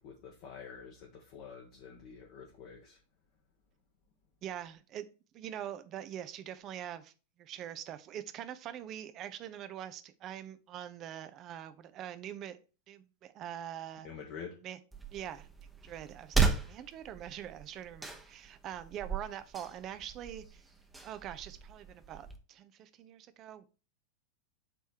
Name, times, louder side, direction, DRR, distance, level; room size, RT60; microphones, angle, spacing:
voice 1, 0.0-3.0 14.0-14.6, left 6 dB, 45° left, 1.2 m, -47 dB
voice 2, 4.4-5.1 5.3-7.1 7.4-12.6 12.9-14.1 14.6-14.8 15.1-15.5 15.8-20.6 21.0-23.7, right 10 dB, 35° right, 0.7 m, -43 dB
sound 1, 14.9-22.4, right 5 dB, 5° right, 1.0 m, -36 dB
7.6 x 3.4 x 4.5 m
figure-of-eight pair, 90°, 0 cm